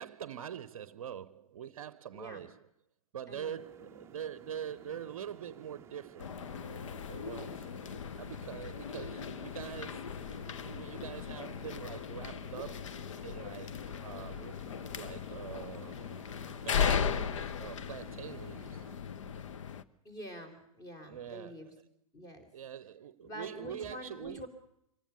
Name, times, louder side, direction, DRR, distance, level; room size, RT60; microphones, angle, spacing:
voice 1, 0.0-2.6 3.1-6.4 6.6-7.7 8.2-10.1 10.6-12.9 13.2-13.7 14.0-14.6 14.9-16.0 16.6-18.8 21.0-21.7 22.5-24.5, right 9 dB, 50° right, 0.7 m, -44 dB
voice 2, 2.1-2.4 3.3-4.0 20.1-21.7 22.1-22.5 23.2-24.5, equal, 20° left, 3.6 m, -46 dB
sound 1, 3.5-19.0, right 7 dB, 15° right, 0.7 m, -55 dB
sound 2, 6.2-19.8, left 7 dB, 55° left, 0.9 m, -37 dB
24.5 x 17.0 x 7.0 m
figure-of-eight pair, 110°, 19 cm